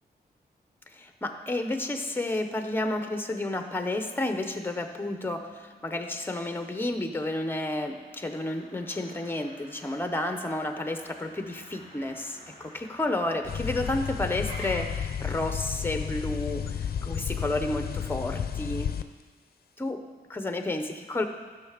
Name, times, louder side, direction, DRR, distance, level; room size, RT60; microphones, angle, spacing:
voice 1, 0.9-18.9 19.8-20.0 20.3-21.2, left 2 dB, 15° left, 6 dB, 0.8 m, -31 dB
Motor vehicle (road), 1.7-14.8, right 1 dB, 35° right, 2.0 m, -50 dB
sound 1, 13.4-19.0, left 8 dB, 65° left, 0.5 m, -32 dB
14.5 x 6.6 x 5.0 m, 1.4 s
wide cardioid pair, 155°, 17 cm